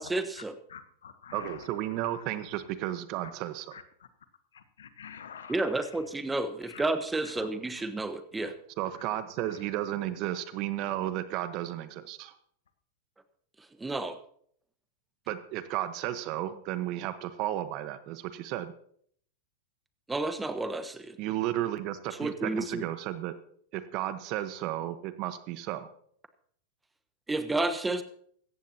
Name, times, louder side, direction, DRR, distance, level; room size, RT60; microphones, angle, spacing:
voice 1, 0.0-0.5 5.5-8.5 13.8-14.2 20.1-21.2 22.2-22.8 27.3-28.0, right 2 dB, 10° right, 10 dB, 1.3 m, -31 dB
voice 2, 0.7-1.6 3.7-3.8 4.8-5.6 6.7-6.8 7.4-7.5 8.4-8.5, left 7 dB, 80° left, 11 dB, 1.1 m, -46 dB
voice 3, 1.3-3.8 8.8-12.3 15.3-18.7 21.2-23.3 23.7-25.9, right 13 dB, 50° right, 12 dB, 1.1 m, -33 dB
17.0 x 14.5 x 2.9 m, 0.62 s
hypercardioid pair, 100°, 0 cm